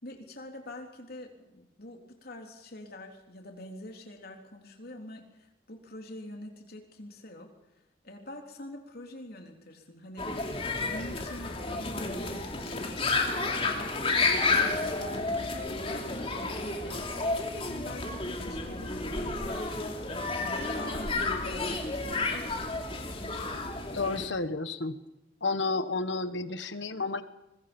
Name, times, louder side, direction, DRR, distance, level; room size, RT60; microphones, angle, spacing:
voice 1, 0.0-7.5 8.0-10.4 10.8-17.4 17.6-19.6 20.4-22.7, left 1 dB, 55° left, 2 dB, 3.6 m, -45 dB
sound 1, 10.2-24.3, left 3 dB, 30° left, 3.0 m, -31 dB
voice 2, 23.9-25.0 25.4-27.2, left 3 dB, 70° left, 11 dB, 1.4 m, -31 dB
25.0 x 21.5 x 5.4 m, 0.93 s
head